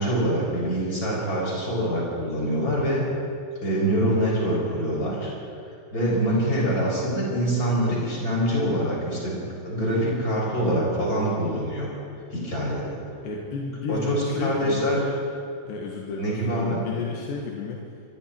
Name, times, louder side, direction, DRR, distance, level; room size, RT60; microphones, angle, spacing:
voice 1, 0.0-3.0 3.6-5.3 5.9-9.4 9.7-11.9 12.3-13.0 13.9-15.0 16.2-16.9, equal, 20° left, -5 dB, 7.4 m, -25 dB
voice 2, 6.1-6.4 13.2-15.0 15.7-17.8, left 4 dB, 90° left, -1 dB, 3.9 m, -32 dB
25.5 x 24.0 x 4.6 m, 2.5 s
omnidirectional pair, 4.8 m